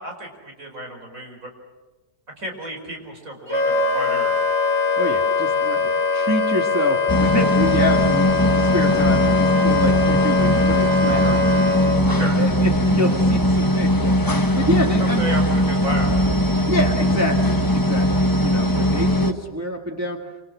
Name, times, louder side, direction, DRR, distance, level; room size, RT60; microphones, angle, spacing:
voice 1, 0.0-1.5 2.4-4.4 12.2-12.4 15.2-16.1, right 1 dB, 55° right, 2 dB, 5.6 m, -32 dB
Wind instrument woodwind instrument, 3.5-12.0, left 4 dB, 40° left, 2.8 m, -21 dB
voice 2, 5.0-11.8 12.3-15.3 16.7-20.2, equal, 10° right, 1 dB, 1.7 m, -27 dB
sound 1, 7.1-19.3, equal, 15° left, 0.9 m, -19 dB
27.0 x 27.0 x 6.3 m, 1.2 s
omnidirectional pair, 1.7 m